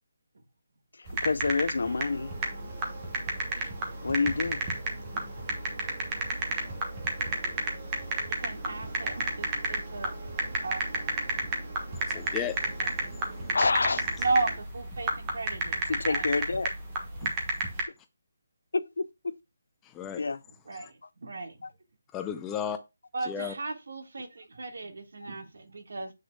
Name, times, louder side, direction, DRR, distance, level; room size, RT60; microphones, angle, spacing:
voice 1, 1.0-2.3 4.0-4.6 13.5-14.0 15.9-16.7 18.7-19.4 20.2-20.4 21.6-21.7, left 4 dB, 75° left, 0.6 m, -28 dB
sound 1, 1.1-17.8, right 2 dB, 15° right, 1.3 m, -31 dB
sound 2, 1.8-14.6, right 3 dB, 35° right, 1.9 m, -46 dB
voice 2, 8.4-10.1 10.6-11.1 14.2-16.6 17.2-17.4 20.7-21.6 23.1-26.1, right 3 dB, 65° right, 1.6 m, -35 dB
voice 3, 12.0-12.6 17.2-17.3 19.9-20.2 20.7-20.9 22.1-22.8 23.3-23.5, left 9 dB, 10° left, 0.5 m, -34 dB
7.9 x 6.2 x 2.3 m
hypercardioid pair, 175°, 0 cm